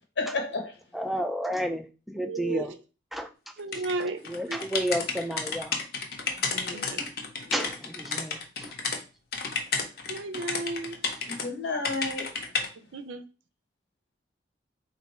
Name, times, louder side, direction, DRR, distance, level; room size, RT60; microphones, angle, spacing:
voice 1, 0.2-0.7 6.5-6.9 7.5-7.7 11.3-12.3, left 3 dB, 80° left, 1.1 m, -32 dB
voice 2, 0.9-2.7 3.1-3.3 4.3-5.8 7.0-7.1 7.5-8.7, equal, ahead, 0.3 m, -31 dB
voice 3, 2.2-2.7 3.6-4.2 4.5-4.6 6.7-7.0 10.1-11.2 12.9-13.2, right 3 dB, 90° right, 0.5 m, -34 dB
sound 1, 3.7-9.0 9.3-11.5 11.8-12.7, left 5 dB, 55° left, 0.6 m, -32 dB
3.4 x 2.6 x 4.2 m
head